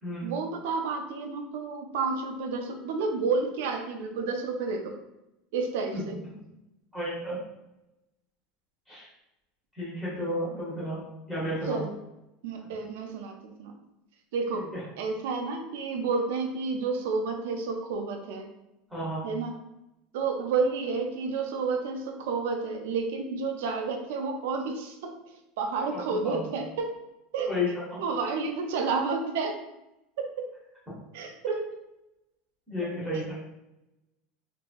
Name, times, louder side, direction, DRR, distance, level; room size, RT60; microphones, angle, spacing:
voice 1, 0.2-4.9 5.5-6.1 11.7-11.9 12.4-13.7 14.3-14.7 15.0-18.5 19.2-19.5 20.1-25.2 25.6-26.9 27.3-27.5 28.0-29.6 30.2-30.5 31.1-31.6 33.1-33.3, right 4 dB, 75° right, 4 dB, 0.4 m, -30 dB
voice 2, 6.9-7.4 8.9-9.1 9.7-11.0 11.3-11.8 14.5-14.8 18.9-19.3 25.9-26.4 27.5-27.7 32.7-33.3, left 1 dB, ahead, -9 dB, 0.8 m, -32 dB
2.8 x 2.6 x 2.3 m, 0.92 s
supercardioid pair, 180°, 0 cm